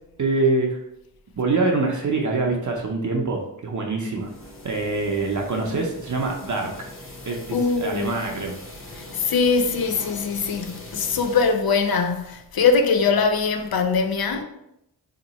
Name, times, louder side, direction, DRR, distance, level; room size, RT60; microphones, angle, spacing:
voice 1, 0.2-0.8 1.4-4.3 4.6-6.7 7.3-8.6, right 3 dB, 45° right, 0.6 m, -24 dB
sound 1, 4.2-11.6, left 1 dB, 30° left, 0.9 m, -41 dB
voice 2, 7.5-8.1 9.0-14.4, left 5 dB, 60° left, 0.5 m, -22 dB
2.9 x 2.2 x 4.0 m
cardioid pair, 45°, 41 cm